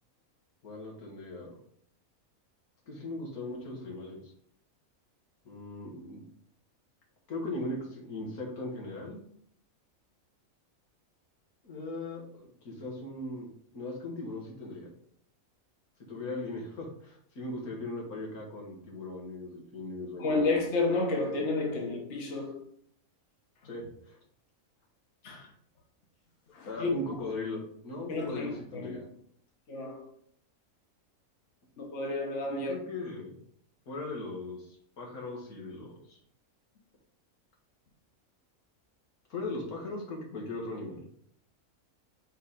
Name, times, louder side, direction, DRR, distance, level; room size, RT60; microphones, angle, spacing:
voice 1, 0.6-1.5 2.9-4.2 5.5-6.2 7.3-9.2 11.6-13.5 13.7-14.9 16.1-20.5 23.6-24.2 26.7-29.1 32.5-33.4 33.9-36.2 39.3-41.0, left 2 dB, 90° left, 2.2 m, -39 dB
voice 2, 20.2-22.6 25.2-25.5 26.5-26.9 28.1-29.0 29.7-30.1 31.8-32.7, left 3 dB, 55° left, 1.5 m, -31 dB
5.3 x 4.3 x 5.0 m
omnidirectional pair, 1.5 m